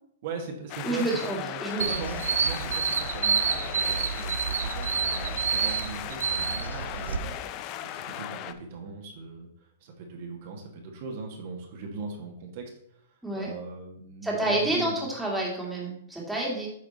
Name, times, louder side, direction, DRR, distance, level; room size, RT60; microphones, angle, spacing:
voice 1, 0.2-1.1 1.4-7.4 7.8-12.7 13.3-15.0, right 4 dB, 55° right, 1 dB, 1.5 m, -39 dB
sound 1, 0.7-8.5, left 11 dB, 35° left, 0.5 m, -37 dB
voice 2, 0.8-1.8 13.2-13.5 14.2-16.7, right 1 dB, 5° right, -4 dB, 2.0 m, -29 dB
sound 2, 1.8-7.2, right 7 dB, 90° right, 0.7 m, -28 dB
8.4 x 5.0 x 4.1 m, 0.71 s
hypercardioid pair, 145°, 0 cm